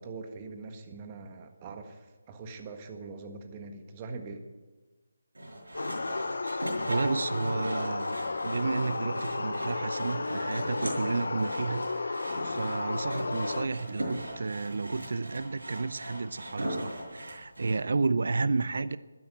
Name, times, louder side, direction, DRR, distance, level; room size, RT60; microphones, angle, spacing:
voice 1, 0.0-4.4, right 4 dB, 25° right, 6 dB, 1.6 m, -42 dB
Sawing, 5.3-17.8, right 1 dB, 85° right, 6.5 m, -39 dB
sound 1, 5.7-13.7, left 3 dB, 70° left, 0.8 m, -33 dB
voice 2, 6.4-19.0, right 4 dB, 60° right, 16 dB, 0.6 m, -32 dB
12.5 x 10.5 x 9.2 m, 1.2 s
figure-of-eight pair, 155°, 0 cm